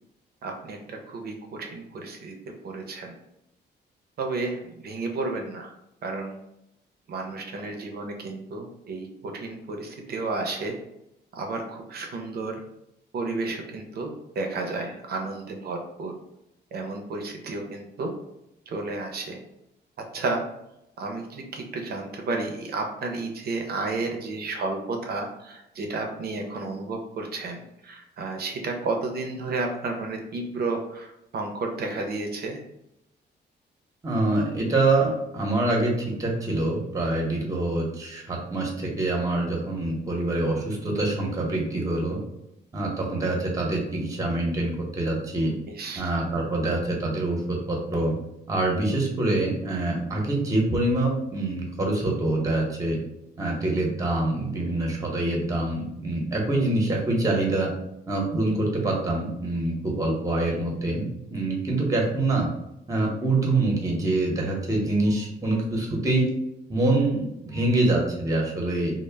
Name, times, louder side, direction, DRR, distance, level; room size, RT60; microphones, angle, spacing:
voice 1, 0.4-2.3 2.6-3.2 4.2-5.7 6.0-6.4 7.1-10.8 11.3-12.6 13.1-16.1 16.7-18.1 18.7-19.4 20.1-20.4 21.0-32.6 45.7-46.0, right 3 dB, 60° right, 2 dB, 0.5 m, -32 dB
voice 2, 34.0-42.2 42.7-45.5 45.9-48.1 48.5-53.0 53.4-57.7 58.1-62.5 62.9-66.3 66.7-68.9, right 2 dB, 20° right, -1 dB, 0.7 m, -25 dB
2.0 x 2.0 x 3.2 m, 0.85 s
cardioid pair, 95°, 18 cm